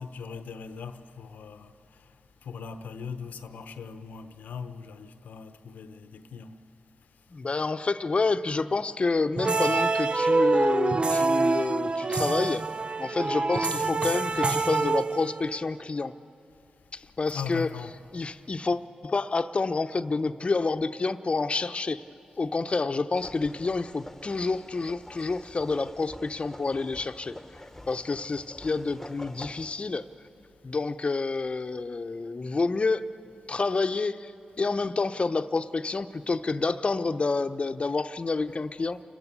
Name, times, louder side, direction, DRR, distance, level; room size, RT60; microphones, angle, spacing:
voice 1, 0.0-1.7 2.4-6.5 17.3-18.0, left 6 dB, 85° left, 0.9 m, -39 dB
voice 2, 7.3-12.6 13.0-16.1 16.9-17.7 18.1-22.0 22.4-27.4 27.9-30.0 30.6-33.0 33.5-34.3 34.6-39.0, left 3 dB, 45° left, 0.8 m, -28 dB
sound 1, 9.4-15.6, right 3 dB, 40° right, 0.4 m, -26 dB
sound 2, 23.1-29.7, left 1 dB, 10° left, 1.2 m, -46 dB
28.5 x 14.0 x 8.4 m
supercardioid pair, 45°, 3 cm